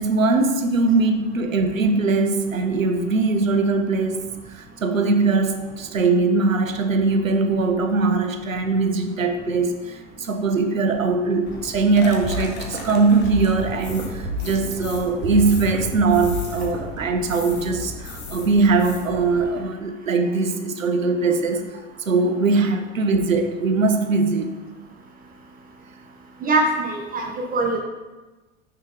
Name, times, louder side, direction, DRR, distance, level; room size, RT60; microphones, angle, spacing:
voice 1, 0.0-21.7 22.1-24.5, right 3 dB, 80° right, 7 dB, 0.8 m, -21 dB
sound 1, 11.5-19.5, left 4 dB, 25° left, 1.2 m, -37 dB
sound 2, 12.0-17.1, right 1 dB, 55° right, 1.7 m, -31 dB
voice 2, 26.4-27.8, right 2 dB, 20° right, 0 dB, 1.0 m, -22 dB
6.3 x 5.7 x 3.9 m, 1.2 s
figure-of-eight pair, 85°, 40 cm